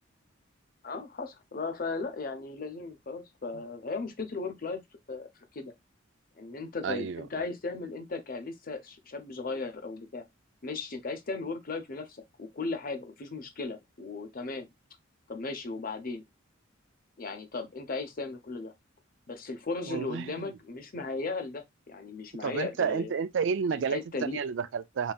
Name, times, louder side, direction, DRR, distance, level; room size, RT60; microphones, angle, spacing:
voice 1, 0.8-4.8 5.1-5.3 5.5-5.7 6.4-10.2 10.6-14.7 15.3-16.2 17.2-18.7 19.3-23.1 23.7-24.4, left 3 dB, 45° left, 0.7 m, -36 dB
voice 2, 6.8-7.2 19.9-20.4 22.4-25.1, right 6 dB, 60° right, 0.4 m, -31 dB
4.1 x 3.4 x 2.3 m
head